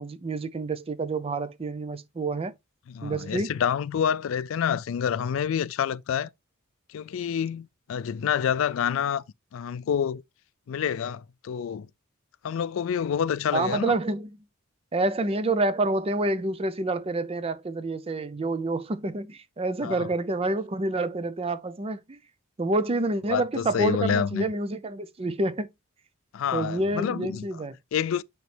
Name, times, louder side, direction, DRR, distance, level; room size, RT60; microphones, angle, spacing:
voice 1, 0.0-2.5 3.0-3.6 13.5-14.4 14.9-22.2 22.6-25.7 26.5-27.8, right 2 dB, 25° right, 0.5 m, -28 dB
voice 2, 2.9-6.3 6.9-9.2 9.5-10.2 10.7-11.9 12.4-13.9 19.8-20.1 23.3-24.4 26.3-27.4 27.9-28.2, left 8 dB, 65° left, 0.3 m, -28 dB
9.2 x 3.1 x 3.3 m
head